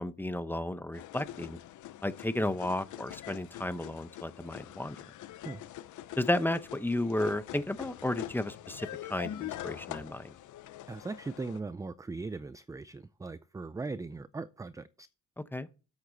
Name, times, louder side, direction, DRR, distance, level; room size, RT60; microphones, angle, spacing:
voice 1, 0.0-1.6 2.0-5.1 6.2-10.3 15.4-15.7, left 1 dB, 5° left, 0.8 m, -33 dB
sound 1, 0.9-11.6, left 13 dB, 75° left, 0.7 m, -44 dB
voice 2, 10.9-15.1, right 3 dB, 10° right, 0.4 m, -39 dB
9.4 x 8.2 x 4.0 m
cardioid pair, 90°, 30 cm